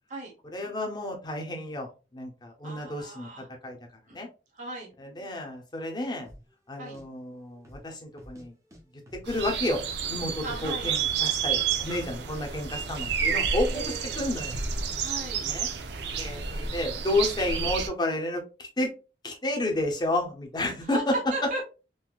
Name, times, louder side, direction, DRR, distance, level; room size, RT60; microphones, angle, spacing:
voice 1, 0.5-3.8 4.1-4.3 5.0-6.3 6.7-8.5 9.2-14.5 15.4-15.7 16.1-18.9 19.2-21.2, left 1 dB, 25° left, 1 dB, 0.8 m, -31 dB
voice 2, 2.6-3.5 4.1-4.2 4.6-4.9 6.8-7.0 10.4-10.9 13.7-14.2 15.0-15.4 20.9-21.0 21.3-21.6, right 2 dB, 45° right, 0 dB, 1.0 m, -37 dB
sound 1, 6.2-6.5 6.9-7.0 7.6-7.9 8.2-8.8 9.1-9.9 10.1-10.2 10.5-11.3 11.5-11.6 11.9-12.1 12.4-12.7 13.2-13.5 13.8-15.1 15.4-15.5 16.1-16.3 16.6-16.9 17.2-17.3, equal, 15° right, 0.8 m, -49 dB
sound 2, 9.2-17.9, right 6 dB, 75° right, 0.5 m, -30 dB
3.8 x 2.7 x 2.3 m, 0.32 s
head